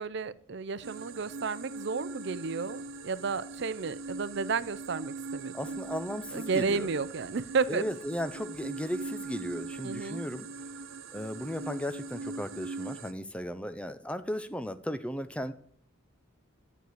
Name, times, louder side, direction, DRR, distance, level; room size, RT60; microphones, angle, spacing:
voice 1, 0.0-5.5 6.3-7.8 9.8-10.2, right 5 dB, 55° right, 17 dB, 0.5 m, -32 dB
sound 1, 0.8-13.1, right 3 dB, 75° right, 1.0 m, -41 dB
voice 2, 5.5-6.9 7.7-10.5 11.1-15.5, equal, 5° left, 11 dB, 0.5 m, -36 dB
12.0 x 6.5 x 9.5 m, 0.62 s
head